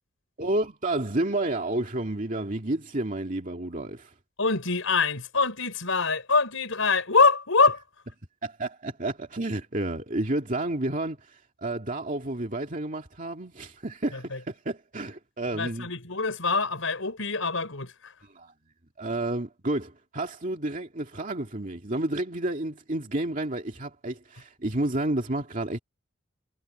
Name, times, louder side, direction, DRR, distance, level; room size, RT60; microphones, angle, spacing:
voice 1, 0.4-4.1 8.4-15.9 18.2-18.5 19.0-25.8, right 1 dB, 40° right, 2.3 m, -30 dB
voice 2, 4.4-7.8 14.1-14.4 15.6-18.1, left 4 dB, 80° left, 4.4 m, -24 dB
head